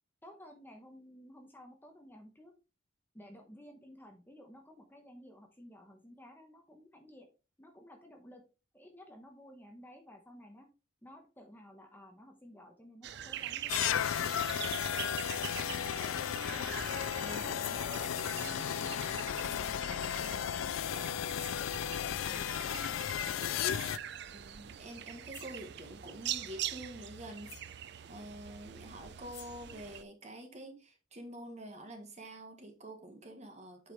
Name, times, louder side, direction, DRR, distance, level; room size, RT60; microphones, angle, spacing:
voice 1, 0.2-2.5 3.1-7.3 7.6-8.4 8.7-10.7 11.0-14.5 15.4-16.7 17.3-21.2 21.5-23.4, equal, 10° left, 1.0 m, -54 dB
sound 1, 13.0-30.0, right 10 dB, 55° right, 0.4 m, -44 dB
sound 2, 13.7-24.0, left 10 dB, 80° left, 0.3 m, -34 dB
sound 3, 15.8-16.1 17.3-17.4 17.6-18.0 19.4-19.8 21.3-21.7 23.3-23.7 24.9-25.0 25.3-25.6 27.1-27.2 27.4-27.8 29.1-29.7, left 10 dB, 55° left, 0.9 m, -51 dB
voice 2, 24.3-27.7 28.0-33.9, right 1 dB, 35° right, 1.4 m, -47 dB
7.8 x 4.8 x 3.3 m
head